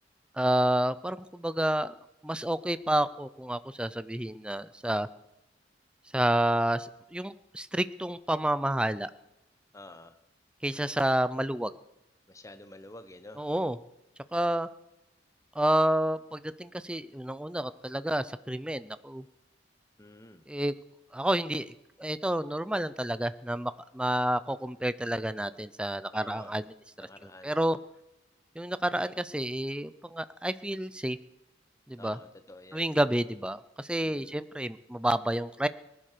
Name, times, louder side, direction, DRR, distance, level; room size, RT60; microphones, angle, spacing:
voice 1, 0.4-1.9 2.2-5.1 6.1-9.1 10.6-11.7 13.4-13.8 14.3-14.7 15.6-19.2 20.5-20.7 21.1-21.7 22.0-26.6 27.0-27.1 27.4-27.8 28.6-31.2 31.9-32.2 32.7-35.7, right 1 dB, 5° right, 14 dB, 0.5 m, -29 dB
voice 2, 9.7-10.2 12.3-13.4 20.0-20.4 26.1-26.7 27.0-27.5 32.0-32.8 34.0-34.4, left 1 dB, 15° left, 10 dB, 1.0 m, -49 dB
19.0 x 11.0 x 6.7 m, 0.91 s
head